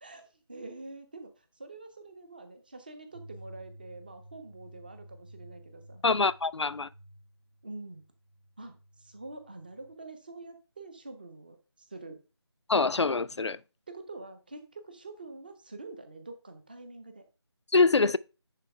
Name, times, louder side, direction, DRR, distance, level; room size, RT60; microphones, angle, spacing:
voice 1, 0.0-6.0 7.6-8.0 8.6-12.2 13.9-17.2, right 2 dB, 20° right, 0.6 m, -46 dB
sound 1, 3.1-9.9, right 1 dB, 35° right, 1.0 m, -53 dB
voice 2, 6.0-6.9 12.7-13.6 17.7-18.2, left 4 dB, 75° left, 0.4 m, -24 dB
10.0 x 4.0 x 3.4 m
figure-of-eight pair, 160°, 15 cm